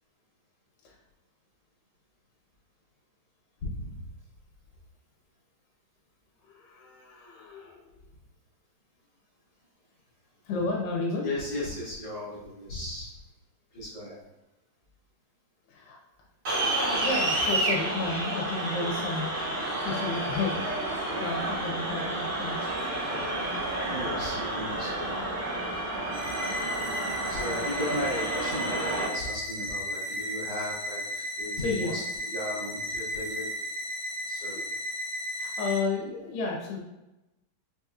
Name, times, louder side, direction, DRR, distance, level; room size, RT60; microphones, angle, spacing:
voice 1, 3.6-4.0 11.2-13.1 13.7-14.2 21.1-21.2 23.1-25.2 27.2-33.5 34.3-34.6, left 1 dB, 60° left, -9 dB, 1.9 m, -36 dB
voice 2, 6.4-7.9 10.4-11.3 15.7-16.0 16.9-19.3 19.8-20.6 21.2-22.9 31.6-32.0 34.5-34.6 35.3-36.8, left 3 dB, 80° left, -1 dB, 2.2 m, -32 dB
sound 1, 16.5-29.1, right 1 dB, 45° right, 1.7 m, -30 dB
sound 2, 26.1-35.8, left 1 dB, 80° right, 1.8 m, -34 dB
5.7 x 2.9 x 2.3 m, 0.96 s
omnidirectional pair, 4.0 m